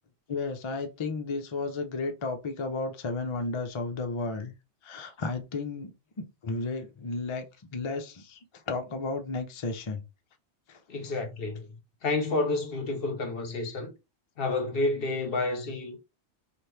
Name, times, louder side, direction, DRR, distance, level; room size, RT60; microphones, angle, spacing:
voice 1, 0.3-4.5 4.8-5.9 6.2-7.5 7.7-8.4 8.7-10.0 10.7-10.8, left 3 dB, 45° left, 0.4 m, -33 dB
voice 2, 10.9-11.7 12.0-13.9 14.4-16.0, left 2 dB, 60° left, 0.9 m, -29 dB
2.8 x 2.5 x 3.2 m
omnidirectional pair, 1.2 m